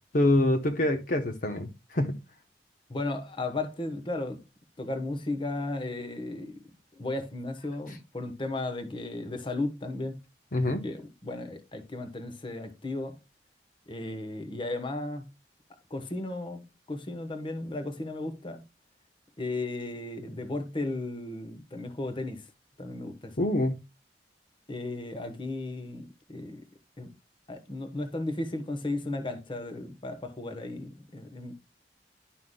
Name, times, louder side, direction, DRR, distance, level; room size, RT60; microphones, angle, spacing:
voice 1, 0.1-2.2 7.9-8.0 10.5-10.8 23.4-23.8, left 1 dB, 50° left, 0.9 m, -26 dB
voice 2, 2.9-4.4 4.8-6.6 7.0-10.2 10.7-13.2 13.9-15.3 15.9-18.6 19.4-22.4 22.8-23.3 24.7-26.6 27.0-27.1 27.5-31.5, left 2 dB, 30° left, 1.1 m, -35 dB
11.0 x 5.7 x 2.2 m
head